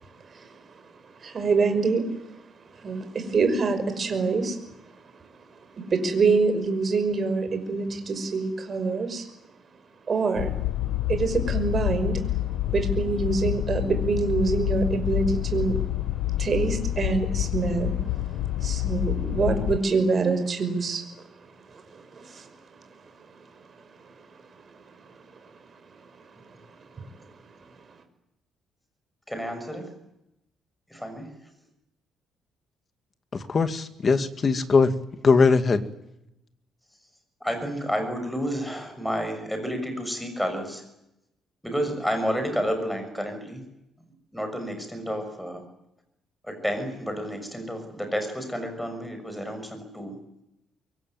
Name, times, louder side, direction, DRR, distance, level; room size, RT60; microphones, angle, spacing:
voice 1, 0.2-2.4 2.7-4.6 4.9-5.0 5.8-9.3 10.1-10.5 11.1-12.2 12.7-15.8 16.4-18.0 18.3-22.9 23.2-23.3 24.0-24.3 24.7-24.8 26.3-27.3, right 4 dB, 35° right, 7 dB, 5.6 m, -26 dB
sound 1, 10.4-19.8, left 14 dB, 90° left, 0.9 m, -28 dB
voice 2, 29.3-29.8 30.9-31.3 37.4-40.8 41.6-43.6 44.3-45.6 46.5-50.1, equal, ahead, 6 dB, 6.3 m, -30 dB
voice 3, 33.3-34.9 35.2-35.8, left 4 dB, 30° left, 9 dB, 2.2 m, -20 dB
25.0 x 23.0 x 9.3 m, 0.85 s
cardioid pair, 145°, 0 cm